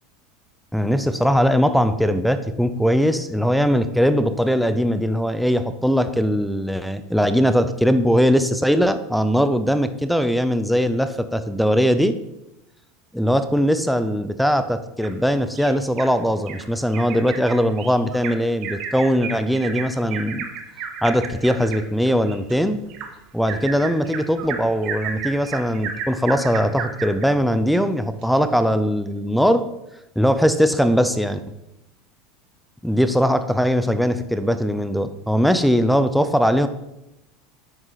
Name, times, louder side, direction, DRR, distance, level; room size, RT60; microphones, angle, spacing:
voice 1, 0.7-12.2 13.1-20.5 21.0-22.8 23.3-29.6 30.2-31.4 32.8-36.7, equal, ahead, 11 dB, 0.6 m, -20 dB
Bird vocalization bird call bird song, 15.0-16.1 16.5-16.6 16.9-27.3 27.7-27.8 28.2-28.3, right 6 dB, 55° right, 1.5 m, -33 dB
9.8 x 7.8 x 4.0 m, 0.87 s
supercardioid pair, 125°, 0 cm